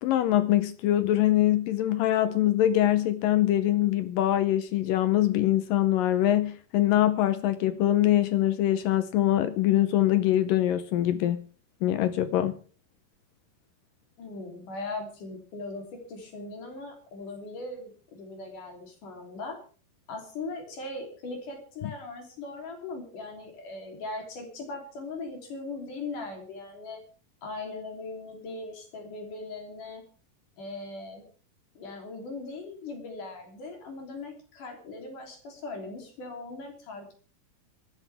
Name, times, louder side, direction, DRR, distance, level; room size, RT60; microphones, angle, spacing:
voice 1, 0.0-11.4 11.8-12.5, left 13 dB, 75° left, 2.2 m, -23 dB
voice 2, 14.2-19.6 20.1-27.0 27.4-30.0 30.6-31.2 31.7-37.1, left 3 dB, 55° left, 4.8 m, -39 dB
24.0 x 12.5 x 3.5 m
omnidirectional pair, 4.4 m